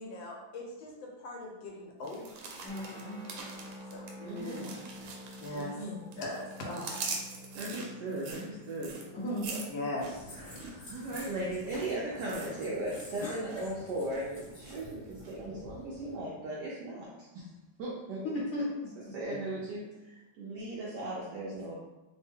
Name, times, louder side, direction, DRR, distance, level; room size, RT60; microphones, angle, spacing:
voice 1, 0.0-2.3 3.9-4.0 5.4-5.9 6.2-7.1 9.7-10.4, left 1 dB, 80° left, -1 dB, 1.4 m, -39 dB
sound 1, 2.0-5.8 6.1-13.1 13.3-13.7 14.1-14.8 15.2-15.3, right 4 dB, 90° right, 1.4 m, -43 dB
voice 2, 2.6-3.2 4.2-4.7 9.1-9.6 18.2-19.4, left 1 dB, 65° left, -6 dB, 1.2 m, -37 dB
sound 2, 2.7-11.6, left 1 dB, 40° right, 1.1 m, -50 dB
voice 3, 4.2-4.7 5.5-6.0 7.5-8.9 10.3-17.5 17.8-18.4 19.1-21.7, right 1 dB, 70° right, -5 dB, 1.1 m, -37 dB
sound 3, 10.0-16.1, left 1 dB, 45° left, 0.3 m, -48 dB
3.3 x 2.1 x 3.4 m, 1.0 s
omnidirectional pair, 2.1 m